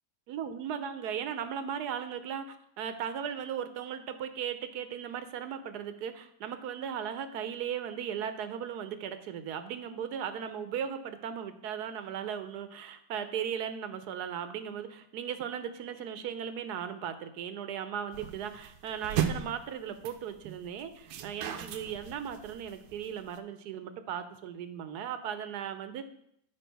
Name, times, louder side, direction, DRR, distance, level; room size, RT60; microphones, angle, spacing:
voice 1, 0.3-26.0, right 8 dB, 70° right, 10 dB, 1.1 m, -37 dB
sound 1, 18.1-23.4, right 9 dB, 90° right, 1.4 m, -36 dB
8.9 x 5.0 x 4.6 m, 0.73 s
omnidirectional pair, 2.1 m